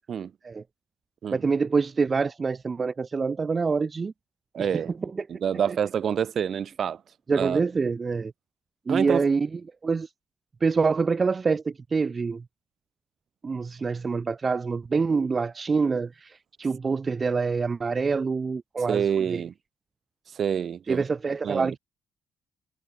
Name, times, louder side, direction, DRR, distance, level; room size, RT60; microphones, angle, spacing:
voice 1, 1.3-4.1 4.6-4.7 5.0-5.3 7.3-8.3 8.9-10.1 10.6-12.4 13.4-19.4 20.9-21.8, right 4 dB, 35° right, 0.7 m, -26 dB
voice 2, 4.5-4.9 5.3-7.0 7.3-7.6 8.9-9.3 18.9-19.5 20.3-21.0 21.4-21.7, right 8 dB, 55° right, 2.0 m, -27 dB
cardioid pair, 90°, 0 cm